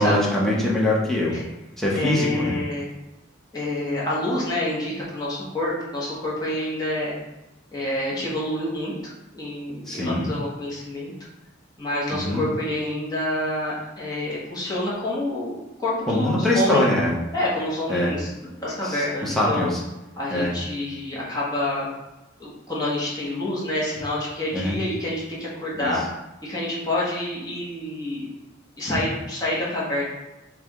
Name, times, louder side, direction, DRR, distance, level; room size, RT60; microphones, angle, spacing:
voice 1, 0.0-1.3 1.8-2.6 9.9-10.3 12.1-12.4 16.1-17.1 17.9-18.1 18.8-19.8 20.3-20.5 24.5-24.8 25.8-25.9, left 1 dB, ahead, -5 dB, 0.9 m, -23 dB
voice 2, 1.9-2.9 3.5-7.1 7.7-11.1 11.8-16.8 17.3-19.7 20.2-21.9 22.4-26.0 26.4-28.3 28.8-30.0, left 1 dB, 20° left, -7 dB, 1.3 m, -27 dB
3.4 x 3.3 x 3.6 m, 1.0 s
head